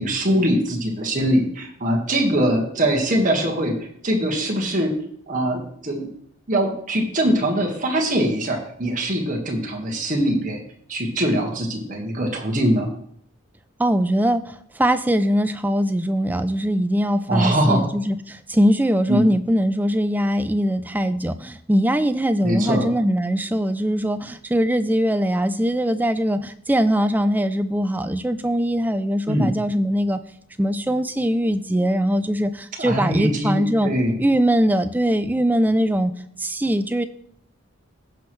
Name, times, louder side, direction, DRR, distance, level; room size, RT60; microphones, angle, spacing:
voice 1, 0.0-3.7 4.0-4.9 5.3-6.1 6.5-10.6 10.9-12.9 17.3-17.9 19.1-19.3 22.4-22.9 29.3-29.5 32.8-34.2, right 1 dB, 40° right, 0 dB, 1.7 m, -22 dB
voice 2, 13.8-30.2 30.6-33.9 34.2-36.1 36.4-37.0, equal, 10° right, 11 dB, 0.3 m, -21 dB
15.5 x 6.1 x 3.2 m, 0.68 s
head